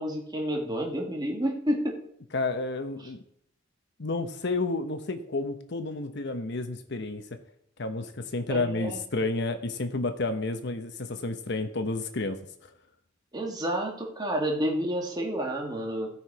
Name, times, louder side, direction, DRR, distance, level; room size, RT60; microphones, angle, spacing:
voice 1, 0.0-2.0 8.5-9.0 13.3-16.1, right 1 dB, 20° right, 1 dB, 1.9 m, -30 dB
voice 2, 2.3-3.2 4.0-7.2 7.8-12.4, left 3 dB, 65° left, 8 dB, 0.9 m, -30 dB
16.0 x 5.9 x 4.7 m, 0.73 s
head